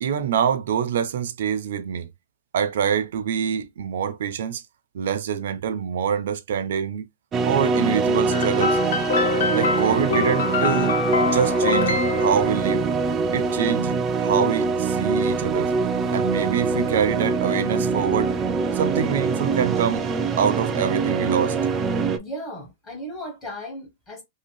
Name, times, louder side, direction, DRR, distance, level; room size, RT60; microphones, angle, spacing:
voice 1, 0.0-2.1 2.5-4.6 4.9-7.1 7.5-8.8 9.5-12.9 13.3-15.7 16.1-18.3 18.7-20.1 20.4-21.6, right 8 dB, 75° right, 0.5 m, -25 dB
sound 1, 7.3-22.2, right 4 dB, 20° right, 0.3 m, -23 dB
sound 2, 8.3-12.9, left 5 dB, 80° left, 0.7 m, -25 dB
voice 2, 22.2-24.2, equal, 20° left, 1.0 m, -36 dB
2.8 x 2.8 x 3.1 m
supercardioid pair, 165°, 0 cm